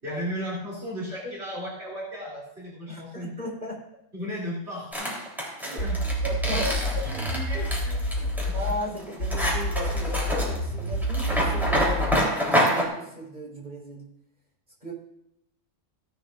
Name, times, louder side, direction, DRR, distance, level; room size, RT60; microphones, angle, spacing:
voice 1, 0.0-3.3 4.1-5.2 5.8-6.0 6.5-8.5, equal, 55° right, -6 dB, 3.6 m, -35 dB
voice 2, 2.9-3.8 5.6-5.8 6.2-7.2 8.5-12.3 12.6-14.1 14.8-14.9, equal, 40° right, -3 dB, 4.7 m, -35 dB
sound 1, 4.9-12.9, equal, ahead, 3.7 m, -27 dB
sound 2, 5.8-8.8 9.2-12.2, equal, 80° left, 1.6 m, -28 dB
17.0 x 11.0 x 2.6 m, 0.81 s
omnidirectional pair, 1.3 m